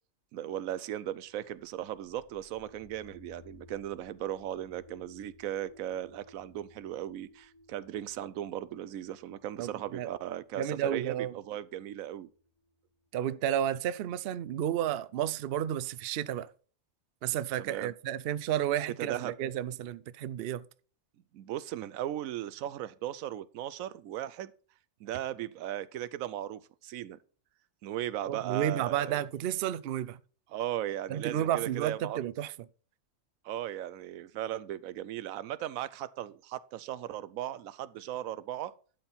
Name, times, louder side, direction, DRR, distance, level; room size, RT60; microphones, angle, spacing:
voice 1, 0.3-12.3 17.6-17.9 19.0-19.3 21.3-24.5 25.0-27.2 27.8-29.2 30.5-32.3 33.4-38.7, right 12 dB, 85° right, 1.0 m, -37 dB
sound 1, 1.3-13.1, left 2 dB, 80° left, 2.7 m, -59 dB
voice 2, 9.6-10.1 10.6-11.3 13.1-16.5 17.2-20.7 28.3-30.2 31.1-32.5, right 11 dB, 60° right, 0.6 m, -32 dB
12.0 x 4.4 x 5.6 m
omnidirectional pair, 1.4 m